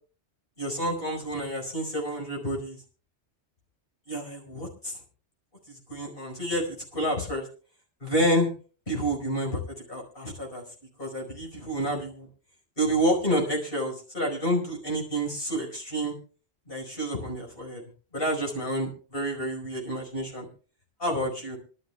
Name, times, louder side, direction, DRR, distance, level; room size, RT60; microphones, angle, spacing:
voice 1, 0.6-2.8 4.1-5.0 5.7-7.5 8.0-8.5 8.9-9.6 9.9-10.6 11.0-12.3 12.8-16.1 16.7-17.8 18.1-20.5 21.0-21.6, equal, 50° left, -1 dB, 5.2 m, -29 dB
26.0 x 12.5 x 2.3 m, 0.39 s
omnidirectional pair, 1.2 m